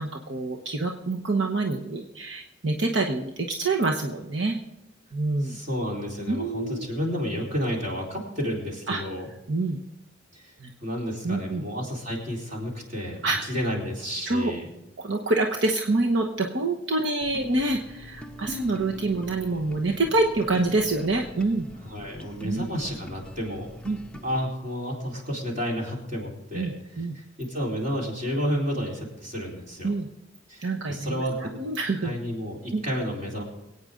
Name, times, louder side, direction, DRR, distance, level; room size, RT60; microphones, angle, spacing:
voice 1, 0.0-4.6 5.1-5.6 6.3-6.9 8.9-9.0 9.5-9.8 10.6-10.7 11.2-11.6 13.2-13.5 14.3-14.5 15.0-21.7 22.4-22.7 23.9-24.0 26.5-27.1 29.8-30.1 30.6-32.1 32.7-32.8, right 2 dB, 75° right, 2 dB, 1.1 m, -26 dB
voice 2, 5.4-9.3 10.3-10.5 10.8-14.6 21.9-23.7 24.2-26.7 27.0-29.9 30.5-31.5 32.0-33.4, equal, 40° right, -2 dB, 4.1 m, -31 dB
sound 1, 17.2-24.4, left 1 dB, 5° left, 0.6 m, -43 dB
23.5 x 9.0 x 3.8 m, 0.92 s
head